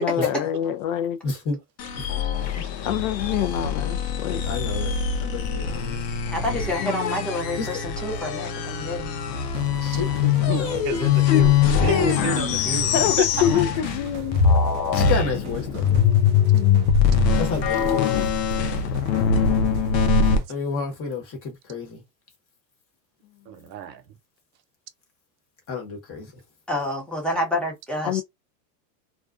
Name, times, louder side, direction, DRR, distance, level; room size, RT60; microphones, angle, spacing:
voice 1, 0.0-1.2 2.8-4.4 6.8-7.3 11.9-12.1 12.9-14.4 16.5-16.9 28.0-28.2, left 10 dB, 55° left, 0.5 m, -26 dB
voice 2, 1.2-1.6 4.4-4.9 5.2-6.0 7.6-7.8 9.8-10.1 10.6-10.7 14.9-15.9 17.4-18.2 20.5-22.0 25.7-26.4, left 5 dB, 30° left, 1.1 m, -30 dB
sound 1, 1.8-14.1 14.3-20.4, left 7 dB, 85° left, 0.8 m, -22 dB
voice 3, 6.3-9.1 26.7-28.2, left 1 dB, ahead, 0.8 m, -28 dB
sound 2, 9.5-20.5, right 4 dB, 25° right, 0.4 m, -38 dB
voice 4, 10.2-13.6 20.3-20.4 23.5-24.1, right 8 dB, 85° right, 0.7 m, -32 dB
2.4 x 2.2 x 2.4 m
supercardioid pair, 135°, 49 cm